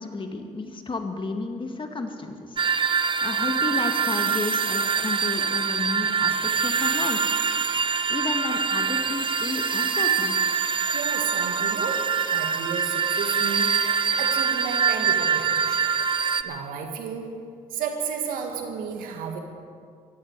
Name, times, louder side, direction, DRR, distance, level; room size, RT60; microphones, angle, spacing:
voice 1, 0.0-2.6 3.2-7.4 8.1-10.3, left 3 dB, 35° left, 5 dB, 2.1 m, -32 dB
sound 1, 2.6-16.4, right 6 dB, 35° right, 0.8 m, -24 dB
voice 2, 10.6-12.0 12.3-15.9 16.4-17.3 17.7-19.4, right 6 dB, 80° right, 4 dB, 1.9 m, -33 dB
18.0 x 14.5 x 4.8 m, 2.2 s
supercardioid pair, 55°, 15 cm